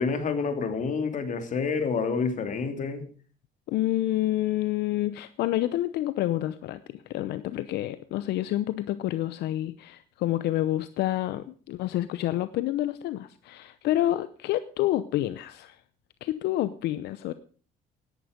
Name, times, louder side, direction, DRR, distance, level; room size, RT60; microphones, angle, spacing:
voice 1, 0.0-3.1, left 5 dB, 50° left, 8 dB, 3.0 m, -28 dB
voice 2, 3.7-15.8 16.2-17.3, left 14 dB, 80° left, 14 dB, 0.8 m, -28 dB
17.5 x 11.0 x 5.2 m, 0.41 s
cardioid pair, 110°, 17 cm